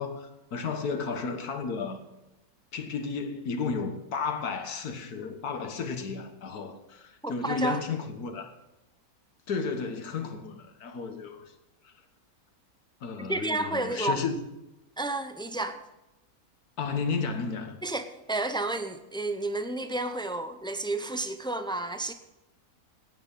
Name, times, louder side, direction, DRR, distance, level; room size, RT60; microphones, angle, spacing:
voice 1, 0.0-2.1 2.7-8.5 9.5-11.5 11.8-11.9 13.0-14.5 16.8-17.8, left 5 dB, 85° left, 7 dB, 1.8 m, -33 dB
voice 2, 7.2-7.8 13.2-14.2 15.0-15.8 17.8-22.1, right 2 dB, 5° left, 9 dB, 0.3 m, -31 dB
16.0 x 9.5 x 5.4 m, 0.95 s
omnidirectional pair, 1.6 m